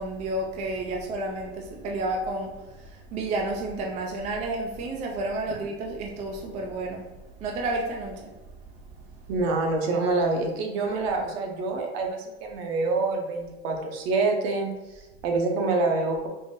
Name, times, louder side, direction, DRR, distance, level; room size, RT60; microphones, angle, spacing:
voice 1, 0.0-7.0 7.4-8.3, right 2 dB, 20° right, 0 dB, 0.3 m, -31 dB
voice 2, 9.3-16.3, right 3 dB, 65° right, 2 dB, 0.8 m, -26 dB
3.6 x 2.6 x 2.7 m, 1.1 s
supercardioid pair, 125°, 34 cm